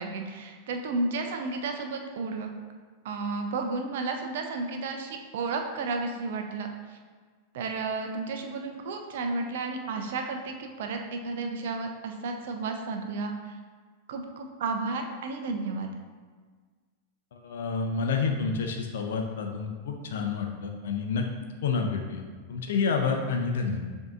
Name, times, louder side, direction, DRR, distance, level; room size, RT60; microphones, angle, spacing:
voice 1, 0.0-2.5 3.0-6.7 7.5-13.6 14.1-15.9, right 3 dB, 55° right, 4 dB, 0.4 m, -32 dB
voice 2, 17.3-21.2 21.6-22.2 22.5-23.8, left 5 dB, 60° left, 3 dB, 0.5 m, -29 dB
6.8 x 2.7 x 2.4 m, 1.5 s
figure-of-eight pair, 90°, 0 cm